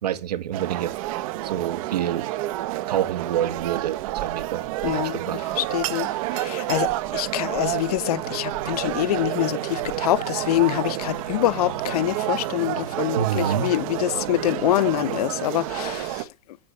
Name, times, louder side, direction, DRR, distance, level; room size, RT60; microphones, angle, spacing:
voice 1, 0.0-1.0 1.4-2.3 2.9-5.4 13.1-13.7, right 10 dB, 75° right, 2.0 m, -27 dB
sound 1, 0.5-16.2, right 16 dB, 55° right, 1.3 m, -29 dB
voice 2, 4.8-5.2 5.5-16.3, left 15 dB, 65° left, 0.8 m, -25 dB
sound 2, 8.2-15.2, left 1 dB, 25° left, 3.1 m, -44 dB
9.2 x 7.6 x 7.7 m
hypercardioid pair, 110°, 21 cm